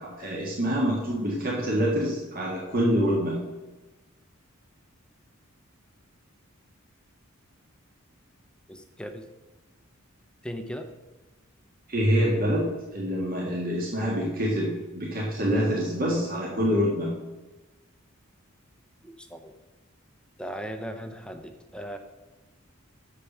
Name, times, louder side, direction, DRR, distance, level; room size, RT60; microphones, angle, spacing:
voice 1, 0.0-3.4 11.9-12.6 12.9-17.1, equal, 45° right, -4 dB, 1.7 m, -26 dB
voice 2, 8.7-9.2 10.4-10.9 19.0-19.5 20.4-22.0, equal, 5° left, 6 dB, 0.8 m, -37 dB
6.9 x 6.7 x 7.2 m, 1.1 s
head